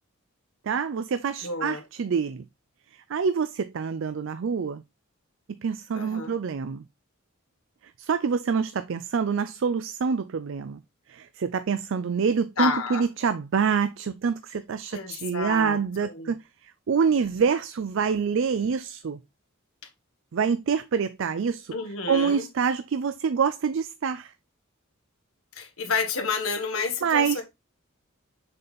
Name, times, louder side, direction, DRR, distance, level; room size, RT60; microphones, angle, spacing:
voice 1, 0.6-2.5 2.9-4.8 5.6-6.8 8.0-10.8 11.1-19.2 20.3-21.7 22.1-24.3 27.0-27.4, right 6 dB, 60° right, 0.4 m, -26 dB
voice 2, 1.4-1.8 5.9-6.4 12.6-13.0 14.9-16.3 21.7-22.5 25.6-27.4, left 5 dB, 90° left, 1.2 m, -30 dB
6.6 x 4.3 x 3.9 m
head